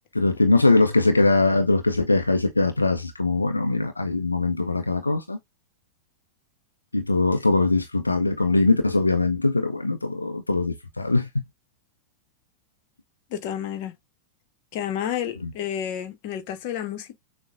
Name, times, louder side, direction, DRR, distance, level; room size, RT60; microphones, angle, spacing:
voice 1, 0.1-5.4 6.9-11.3 15.4-15.5, left 3 dB, 80° left, 0.4 m, -21 dB
voice 2, 13.3-13.9 14.7-17.1, left 10 dB, 45° left, 0.9 m, -30 dB
6.3 x 2.2 x 2.4 m
figure-of-eight pair, 90°, 0 cm